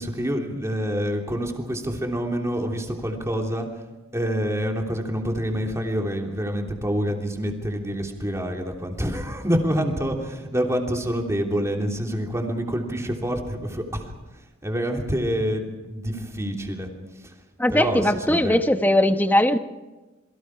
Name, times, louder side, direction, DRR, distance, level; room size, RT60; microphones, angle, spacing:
voice 1, 0.0-3.7 4.1-14.1 14.6-16.9 17.2-17.3 17.7-18.0 18.3-18.6, equal, 15° right, 1 dB, 3.1 m, -27 dB
voice 2, 17.6-19.6, left 1 dB, 10° left, 7 dB, 1.1 m, -19 dB
27.5 x 23.0 x 4.9 m, 1.1 s
head